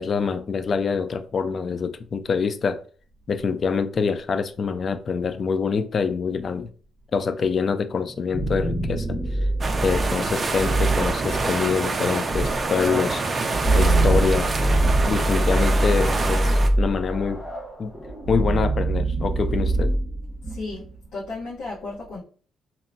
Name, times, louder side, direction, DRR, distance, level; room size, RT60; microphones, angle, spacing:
voice 1, 0.0-2.8 3.3-6.7 7.1-9.2 9.8-13.2 13.7-14.5 15.1-17.4 17.8-17.9 18.3-19.9, left 5 dB, 45° left, 0.3 m, -25 dB
sound 1, 8.0-20.9, right 1 dB, 30° left, 1.0 m, -24 dB
sound 2, 9.6-16.7, right 3 dB, 35° right, 0.4 m, -26 dB
voice 2, 20.5-20.8 21.1-22.2, left 3 dB, 85° left, 1.0 m, -33 dB
2.8 x 2.1 x 2.5 m
cardioid pair, 90°, 0 cm